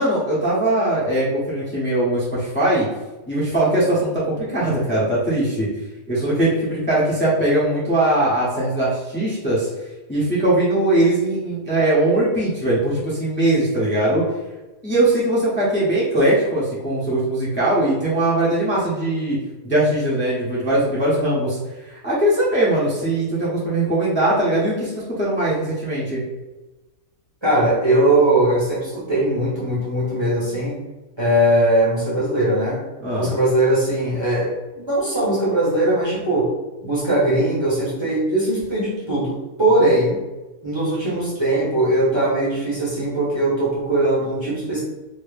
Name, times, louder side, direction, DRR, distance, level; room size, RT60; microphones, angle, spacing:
voice 1, 0.0-2.9 3.3-5.7 6.1-9.7 10.1-14.2 14.8-19.4 19.6-26.2 33.0-33.3, right 1 dB, 10° left, -8 dB, 0.8 m, -20 dB
voice 2, 27.4-30.8 31.2-32.8 33.2-36.5 36.8-40.2 40.6-44.8, right 1 dB, 20° right, -7 dB, 0.9 m, -20 dB
2.9 x 2.7 x 3.3 m, 1.1 s
omnidirectional pair, 1.5 m